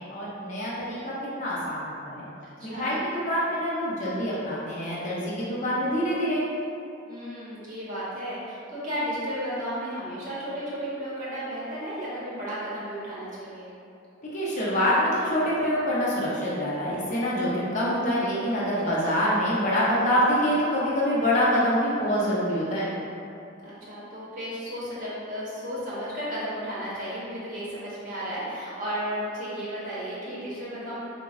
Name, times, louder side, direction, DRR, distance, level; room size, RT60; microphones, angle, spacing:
voice 1, 0.0-2.3 2.6-6.4 14.3-22.9, equal, 35° left, -7 dB, 0.5 m, -25 dB
voice 2, 2.6-3.0 7.1-13.7 18.8-19.1 23.6-31.0, equal, 40° right, -9 dB, 0.8 m, -34 dB
4.3 x 2.0 x 2.4 m, 2.6 s
head